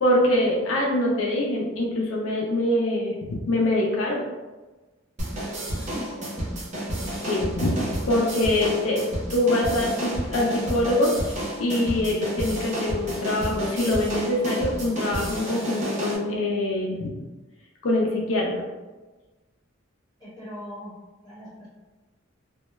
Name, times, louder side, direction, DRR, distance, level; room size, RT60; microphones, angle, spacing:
voice 1, 0.0-4.2 7.2-17.1 17.8-18.6, left 1 dB, 85° left, -2 dB, 0.5 m, -24 dB
sound 1, 5.2-16.2, right 1 dB, 35° right, 0.6 m, -31 dB
voice 2, 5.7-6.5 20.2-20.9 21.2-21.7, equal, 20° left, -10 dB, 1.3 m, -40 dB
2.2 x 2.1 x 3.0 m, 1.2 s
head